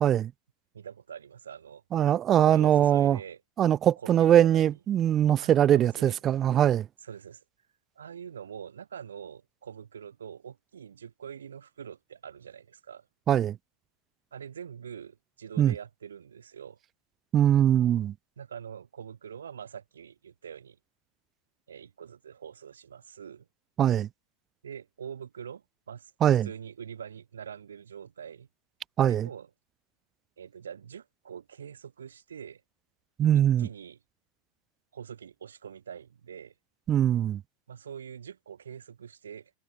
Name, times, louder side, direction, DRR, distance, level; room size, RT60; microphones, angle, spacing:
voice 1, 0.0-0.3 1.9-3.2 3.6-6.9 13.3-13.6 15.6-15.7 17.3-18.1 23.8-24.1 26.2-26.5 29.0-29.3 33.2-33.7 36.9-37.4, right 10 dB, 35° right, 0.4 m, -22 dB
voice 2, 0.7-1.8 2.4-3.4 4.0-4.7 5.4-6.2 7.0-7.4 8.0-13.1 14.3-16.8 18.4-20.8 21.7-23.5 24.6-26.1 26.4-28.5 29.0-29.5 30.4-32.6 33.6-34.0 34.9-36.5 37.7-39.5, right 8 dB, 90° right, 1.7 m, -44 dB
hypercardioid pair, 100°, 0 cm